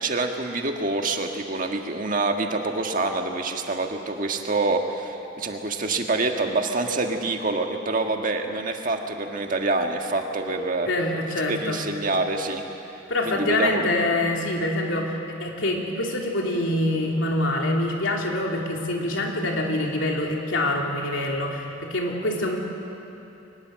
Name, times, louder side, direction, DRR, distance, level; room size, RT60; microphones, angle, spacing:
voice 1, 0.0-10.9 11.5-12.6 13.2-13.9, right 3 dB, 45° right, 3 dB, 1.6 m, -26 dB
voice 2, 10.9-11.8 13.1-22.6, left 1 dB, 80° left, 0 dB, 3.0 m, -25 dB
23.0 x 20.0 x 7.7 m, 2.9 s
head